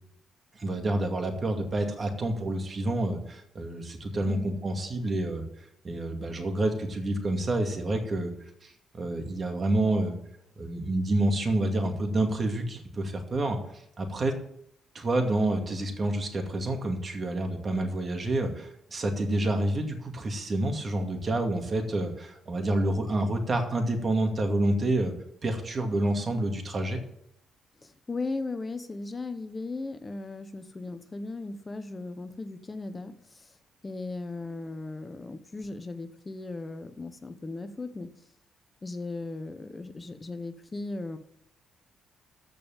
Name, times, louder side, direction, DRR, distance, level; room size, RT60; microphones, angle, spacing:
voice 1, 0.5-5.4 5.8-8.3 8.6-10.2 10.6-13.6 14.0-14.3 14.9-25.1 25.4-27.0, right 1 dB, 35° right, 4 dB, 2.4 m, -28 dB
voice 2, 27.8-33.6 33.8-38.3 38.8-41.2, left 3 dB, 25° left, 9 dB, 0.9 m, -37 dB
14.5 x 5.3 x 7.3 m, 0.75 s
cardioid pair, 90°, 0 cm